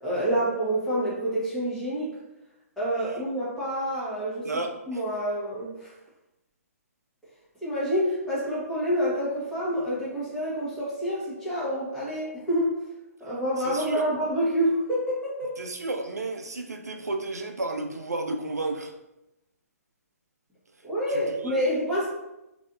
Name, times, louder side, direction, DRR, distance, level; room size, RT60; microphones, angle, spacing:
voice 1, 0.0-2.1 2.8-4.5 4.9-5.9 7.6-12.7 13.2-15.5 20.8-22.1, equal, 5° left, -10 dB, 1.4 m, -27 dB
voice 2, 4.4-5.0 13.6-14.1 15.6-18.9 21.4-21.6, right 2 dB, 80° right, 4 dB, 0.5 m, -32 dB
4.0 x 2.8 x 2.5 m, 0.93 s
figure-of-eight pair, 130°, 9 cm